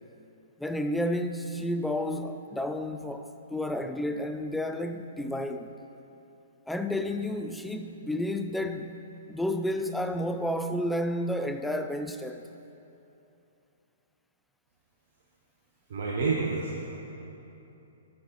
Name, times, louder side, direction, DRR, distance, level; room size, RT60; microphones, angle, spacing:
voice 1, 0.6-5.7 6.7-8.9 9.3-12.5, left 1 dB, 5° left, 6 dB, 0.3 m, -31 dB
voice 2, 15.9-17.0, right 4 dB, 60° right, -3 dB, 0.8 m, -29 dB
8.0 x 6.6 x 2.9 m, 2.9 s
figure-of-eight pair, 120°, 0 cm